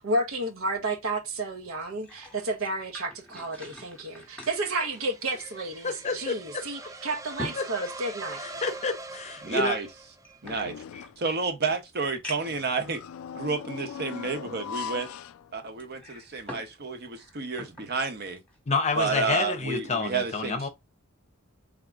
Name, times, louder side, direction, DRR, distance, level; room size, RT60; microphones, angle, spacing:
voice 1, 0.0-8.6, right 2 dB, 85° right, 0.9 m, -31 dB
sound 1, 1.8-5.8 6.2-6.3 6.8-8.8 9.7-11.1 11.7-11.8 12.2-12.7 13.4-13.5 15.8-16.7 17.1-17.9 18.4-18.6, left 1 dB, 5° left, 1.1 m, -44 dB
sound 2, 3.8-10.5, right 2 dB, 15° right, 0.4 m, -43 dB
voice 2, 5.8-6.6 7.6-7.7 8.4-9.8 10.9-11.0 18.7-20.7, left 4 dB, 35° left, 0.6 m, -29 dB
voice 3, 9.4-9.9 10.4-10.7 11.2-13.0 13.3-15.1 15.5-18.4 19.0-20.7, right 4 dB, 50° right, 0.9 m, -30 dB
sound 3, 10.4-11.3 12.4-16.0 16.4-16.5 17.5-17.6, left 7 dB, 80° left, 0.3 m, -40 dB
3.7 x 2.7 x 3.5 m
head